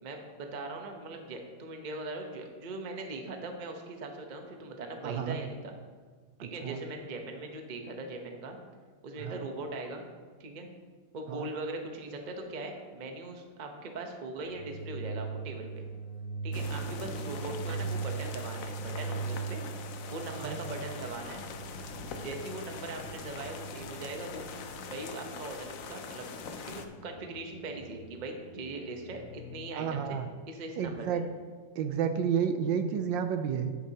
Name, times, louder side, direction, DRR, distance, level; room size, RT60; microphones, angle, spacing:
voice 1, 0.0-5.7 6.4-8.6 9.0-10.0 10.4-10.7 11.1-15.9 16.4-19.6 20.1-21.4 22.2-24.5 24.9-30.2 30.5-31.3, right 2 dB, 45° right, 3 dB, 0.6 m, -40 dB
voice 2, 5.0-5.4 6.6-6.8 9.2-9.4 11.3-11.5 20.3-20.6 29.7-30.3 30.8-31.2 31.8-33.7, right 7 dB, 75° right, 8 dB, 1.2 m, -31 dB
sound 1, 14.5-30.1, right 4 dB, 50° left, 1.4 m, -41 dB
sound 2, 16.5-26.9, left 5 dB, 75° left, 0.7 m, -43 dB
10.0 x 8.8 x 2.9 m, 1.5 s
omnidirectional pair, 2.2 m